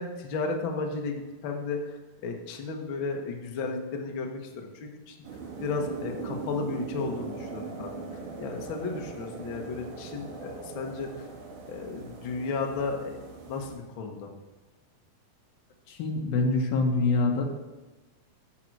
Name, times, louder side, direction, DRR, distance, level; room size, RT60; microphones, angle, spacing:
voice 1, 0.0-5.1 5.6-7.9 8.4-11.3 11.6-13.2 13.5-14.3, left 4 dB, 90° left, 2 dB, 1.0 m, -34 dB
sound 1, 5.2-13.8, right 4 dB, 60° right, 2.9 m, -40 dB
voice 2, 15.9-17.4, left 3 dB, 75° left, 1 dB, 3.3 m, -25 dB
10.5 x 7.6 x 4.7 m, 1.2 s
omnidirectional pair, 4.3 m